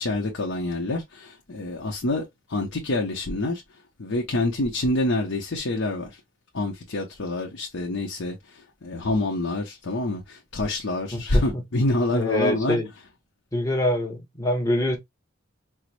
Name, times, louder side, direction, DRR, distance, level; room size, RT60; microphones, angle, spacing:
voice 1, 0.0-3.6 4.0-6.1 6.5-8.4 8.8-12.8, left 2 dB, 75° left, 0.7 m, -26 dB
voice 2, 11.1-11.6 12.1-12.9 13.5-15.0, left 1 dB, 15° left, 0.9 m, -25 dB
4.6 x 2.0 x 2.5 m
head